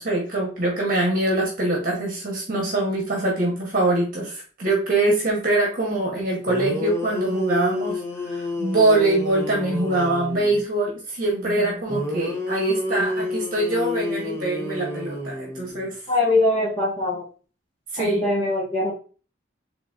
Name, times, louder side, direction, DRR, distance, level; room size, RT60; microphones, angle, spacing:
voice 1, 0.0-16.0 17.9-18.2, right 2 dB, 45° right, -2 dB, 1.1 m, -23 dB
sound 1, 6.2-6.3 6.5-10.6 11.9-15.9, left 2 dB, 15° left, 0.5 m, -29 dB
voice 2, 16.1-17.2 18.0-18.9, left 2 dB, 30° left, -8 dB, 1.4 m, -22 dB
3.9 x 3.4 x 2.4 m, 0.38 s
head